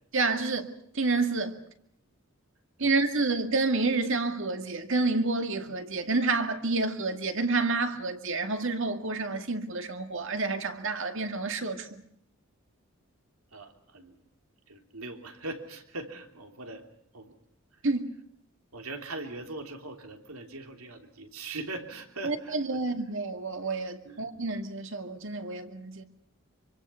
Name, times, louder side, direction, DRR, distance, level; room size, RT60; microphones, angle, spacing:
voice 1, 0.1-1.6 2.8-12.0 17.8-18.1 22.2-26.0, right 3 dB, 60° right, 2.2 m, -29 dB
voice 2, 13.5-14.1 14.7-16.9 17.1-17.3 18.7-22.6 24.0-24.2, right 2 dB, 90° right, 3.3 m, -41 dB
26.0 x 24.5 x 5.7 m
head